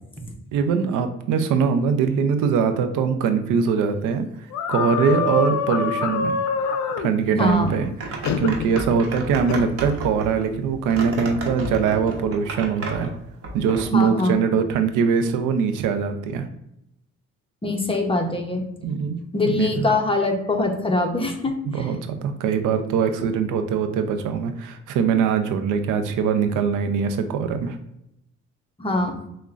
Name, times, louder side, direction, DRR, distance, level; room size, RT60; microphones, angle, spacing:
voice 1, 0.5-6.3 6.6-6.7 7.0-13.1 13.5-16.5 18.8-19.2 19.5-19.9 21.7-27.8, right 6 dB, 90° right, 8 dB, 0.5 m, -22 dB
sound 1, 4.5-7.1 8.2-8.9 9.5-9.7, left 5 dB, 65° left, 0.5 m, -25 dB
voice 2, 7.3-7.8 13.9-14.3 17.6-18.7 19.3-21.9 28.8-29.2, left 2 dB, 20° left, 3 dB, 0.8 m, -23 dB
sound 2, 7.5-13.8, right 2 dB, 50° right, 0.9 m, -32 dB
6.0 x 2.2 x 2.4 m, 0.80 s
cardioid pair, 90°, 30 cm